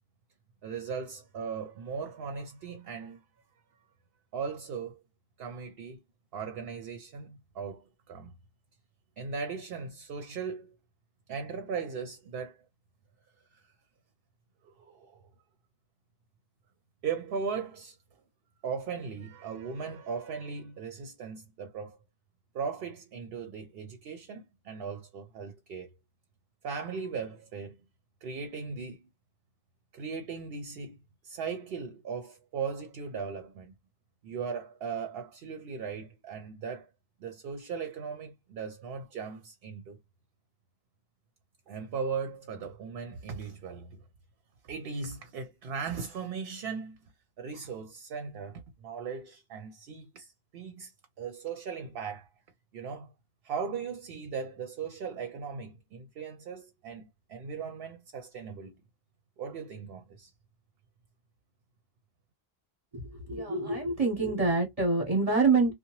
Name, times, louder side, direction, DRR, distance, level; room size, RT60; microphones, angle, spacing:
voice 1, 0.6-3.2 4.3-5.0 5.4-6.0 6.3-8.3 9.2-10.8 11.3-12.6 13.5-13.6 14.6-15.2 17.0-18.0 18.6-22.0 22.5-26.0 26.6-27.8 28.2-29.0 29.9-31.0 31.2-33.7 34.2-36.9 37.2-40.0 41.7-44.0 44.6-47.0 47.4-50.9 51.2-52.3 52.7-53.1 53.4-58.8 59.4-60.3, right 6 dB, 70° right, 0.8 m, -38 dB
voice 2, 63.3-65.7, right 3 dB, 35° right, 1.0 m, -25 dB
2.8 x 2.1 x 2.9 m
omnidirectional pair, 1.1 m